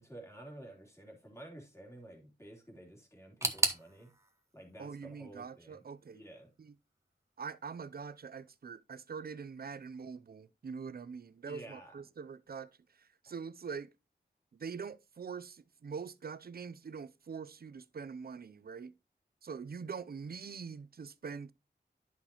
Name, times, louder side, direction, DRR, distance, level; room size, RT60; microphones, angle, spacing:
voice 1, 0.0-4.1 4.5-5.8 6.1-6.5 11.5-11.9 13.3-13.4, right 1 dB, 15° left, 3.0 m, -51 dB
sound 1, 3.4-6.3 6.5-7.4 7.6-7.7 8.6-8.7, right 1 dB, 15° right, 1.0 m, -37 dB
voice 2, 4.8-6.2 6.6-6.8 7.4-13.9 14.5-18.9 19.4-21.5, right 5 dB, 55° right, 0.5 m, -44 dB
10.5 x 5.8 x 2.9 m
wide cardioid pair, 80°, 18 cm